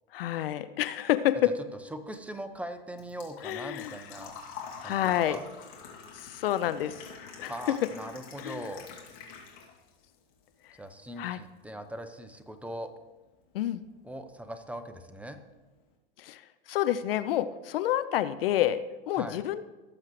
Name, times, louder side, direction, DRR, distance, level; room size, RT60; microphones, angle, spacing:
voice 1, 0.1-1.5 3.4-4.0 4.8-5.4 6.1-7.1 7.4-7.8 8.4-8.7 10.7-10.8 11.2-11.4 13.5-13.8 16.2-19.6, left 12 dB, 70° left, 13 dB, 0.6 m, -29 dB
voice 2, 1.9-4.3 4.8-5.4 7.4-8.9 10.8-12.9 14.0-15.4 19.2-19.4, right 1 dB, 5° right, 8 dB, 0.8 m, -40 dB
Engine / Trickle dribble / Fill (with liquid), 2.0-10.0 10.3-11.3 11.6-11.7 13.6-13.7 13.9-14.2 14.6-14.7 14.9-15.0, left 6 dB, 50° left, 2.5 m, -46 dB
17.5 x 7.3 x 3.1 m, 1.1 s
hypercardioid pair, 100°, 30 cm